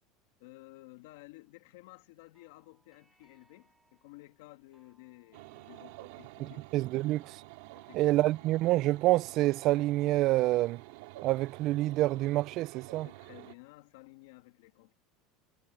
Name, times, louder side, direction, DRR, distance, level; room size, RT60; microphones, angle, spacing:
voice 1, 0.4-6.7 7.7-8.3 13.0-14.9, left 21 dB, 75° left, 2.1 m, -54 dB
sound 1, 2.3-13.7, right 2 dB, 5° right, 5.3 m, -71 dB
sound 2, 5.3-13.5, right 22 dB, 70° right, 3.5 m, -50 dB
voice 2, 6.4-7.4 7.9-10.8 11.2-13.1, right 17 dB, 45° right, 0.3 m, -27 dB
supercardioid pair, 150°, 0 cm